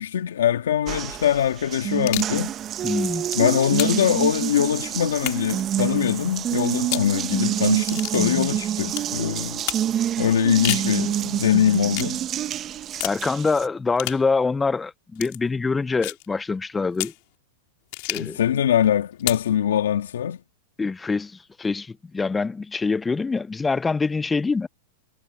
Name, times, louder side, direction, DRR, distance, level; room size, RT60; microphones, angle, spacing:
voice 1, 0.0-2.5 3.4-9.6 10.2-12.2 18.1-20.4, left 9 dB, 85° left, 1.7 m, -22 dB
Water tap faucet, 0.9-13.7, right 10 dB, 30° right, 0.8 m, -27 dB
sound 1, 1.9-2.4 3.0-4.1 5.2-5.6 6.8-7.1 7.9-8.2 8.9-9.1 9.7-9.9 10.4-10.9 11.9-12.1 13.0-13.2 14.0-14.2 15.1-15.4 16.0-16.3 16.9-17.2 17.9-18.4 19.2-19.5, left 29 dB, 55° left, 3.9 m, -30 dB
voice 2, 2.8-3.3 13.0-17.1 18.1-18.4 20.8-24.7, left 4 dB, 10° left, 0.4 m, -25 dB
hypercardioid pair, 125°, 0 cm